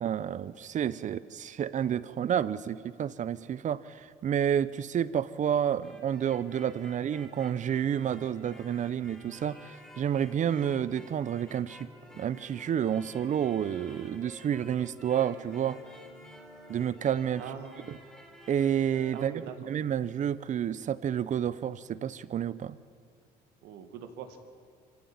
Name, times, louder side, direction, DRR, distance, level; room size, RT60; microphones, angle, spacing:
voice 1, 0.0-9.6 10.0-11.9 12.1-15.8 16.7-17.4 18.5-22.8, right 9 dB, 45° right, 17 dB, 0.8 m, -30 dB
sound 1, 5.5-19.3, equal, 5° left, 4.2 m, -51 dB
voice 2, 17.4-17.9 19.1-19.6 23.6-24.4, right 8 dB, 90° right, 7 dB, 2.1 m, -42 dB
25.5 x 15.5 x 8.9 m, 2.1 s
cardioid pair, 110°, 17 cm